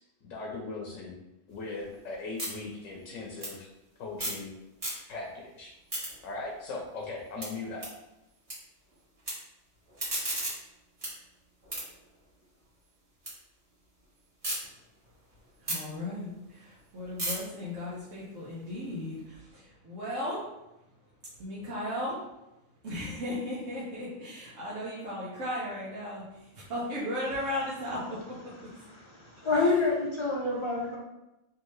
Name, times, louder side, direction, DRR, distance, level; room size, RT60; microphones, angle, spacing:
voice 1, 0.2-1.2 1.5-3.7 4.0-4.5 5.1-5.7 6.2-7.9, left 3 dB, 85° left, -1 dB, 1.0 m, -39 dB
sound 1, 1.5-4.5 4.7-5.3 5.7-8.5 8.8-9.3 9.7-13.3 13.7-14.6 15.0-19.2, right 1 dB, 30° right, 1.4 m, -38 dB
voice 2, 15.6-20.4 21.4-22.2 22.8-28.5 29.3-29.4, left 1 dB, 85° right, -8 dB, 1.2 m, -36 dB
voice 3, 28.6-31.0, left 3 dB, 40° left, -2 dB, 0.4 m, -28 dB
3.6 x 2.8 x 3.1 m, 0.92 s
omnidirectional pair, 1.3 m